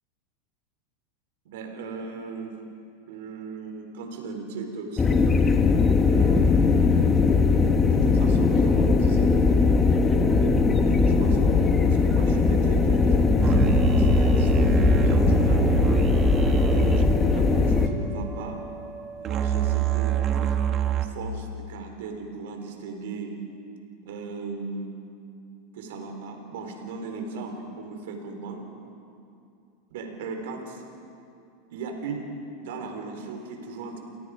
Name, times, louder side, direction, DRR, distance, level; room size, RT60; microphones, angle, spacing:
voice 1, 1.4-2.6 3.1-5.2 6.1-6.8 7.8-9.6 10.8-15.7 16.7-18.6 19.2-20.2 21.0-23.3 24.0-24.9 25.7-28.6 29.9-30.8 31.7-32.3 32.6-34.0, right 4 dB, 75° right, 3 dB, 4.1 m, -37 dB
sound 1, 5.0-17.9, left 4 dB, 20° left, 1.7 m, -20 dB
sound 2, 13.4-21.1, right 11 dB, 40° right, 1.6 m, -26 dB
30.0 x 17.5 x 5.1 m, 2.5 s
hypercardioid pair, 110°, 0 cm